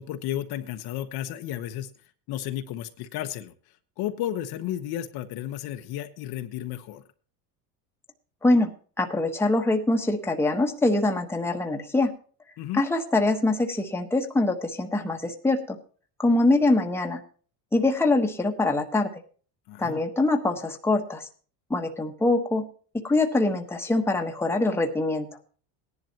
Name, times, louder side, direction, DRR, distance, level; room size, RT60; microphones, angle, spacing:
voice 1, 0.0-1.9 2.3-3.5 4.0-7.0 12.6-12.8 19.7-20.0, left 12 dB, 50° left, 8 dB, 1.1 m, -33 dB
voice 2, 9.0-12.1 12.7-15.8 16.2-17.2 17.7-19.1 19.8-21.3 21.7-22.7 22.9-25.3, left 2 dB, 5° left, 3 dB, 1.3 m, -24 dB
18.0 x 11.0 x 2.9 m, 0.41 s
supercardioid pair, 130°, 47 cm